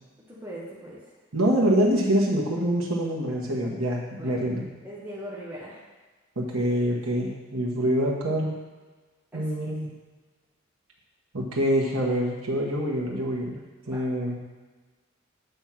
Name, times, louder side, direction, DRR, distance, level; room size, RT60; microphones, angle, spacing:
voice 1, 0.3-1.0 4.2-4.5 4.8-5.8 9.3-9.7 13.8-14.1, equal, 10° right, -8 dB, 1.3 m, -40 dB
voice 2, 1.3-4.6 6.4-8.6 9.3-9.9 11.3-13.6 13.9-14.4, equal, 85° right, -3 dB, 1.4 m, -25 dB
8.0 x 3.6 x 6.0 m, 1.3 s
head